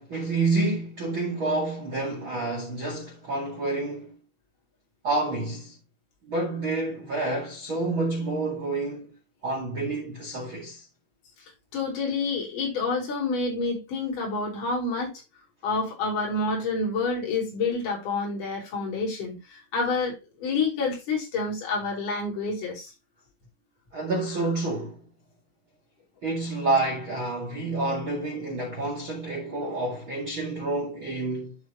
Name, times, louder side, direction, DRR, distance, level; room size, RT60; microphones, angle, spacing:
voice 1, 0.0-4.1 5.0-5.7 6.3-9.1 9.4-10.8 23.9-25.0 26.2-31.6, right 2 dB, 45° right, 1.8 m, -28 dB
voice 2, 11.7-15.1 15.6-22.9, left 3 dB, 45° left, 4.5 m, -28 dB
13.0 x 4.4 x 2.9 m
omnidirectional pair, 5.5 m